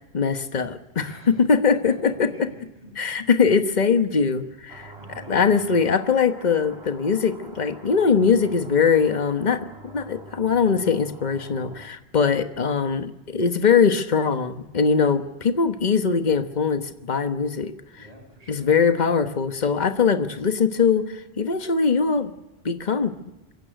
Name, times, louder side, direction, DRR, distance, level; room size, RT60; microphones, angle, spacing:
voice 1, 0.1-2.5 3.0-4.9 5.3-17.7 18.5-22.3 22.6-23.1, left 5 dB, 45° left, 8 dB, 1.3 m, -21 dB
voice 2, 1.0-1.3 1.9-3.1 5.0-5.5 18.0-18.7, right 1 dB, 35° right, 1 dB, 7.9 m, -45 dB
sound 1, 4.7-11.9, right 2 dB, 80° right, 3.0 m, -46 dB
23.5 x 16.0 x 9.2 m, 1.0 s
omnidirectional pair, 1.1 m